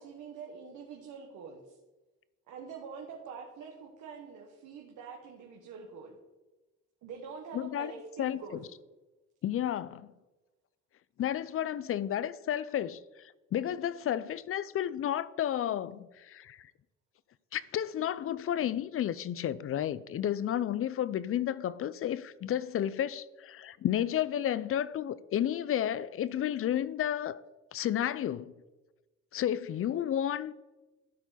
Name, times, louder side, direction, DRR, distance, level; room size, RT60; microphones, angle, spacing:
voice 1, 0.0-1.8 2.5-6.2 7.0-8.7, right 5 dB, 85° right, 1.3 m, -45 dB
voice 2, 7.5-7.9 8.2-8.4 9.4-10.1 11.2-16.7 17.5-27.4 27.7-28.5 29.3-30.5, left 10 dB, 45° left, 0.5 m, -32 dB
13.0 x 5.0 x 4.1 m
cardioid pair, 90°, 30 cm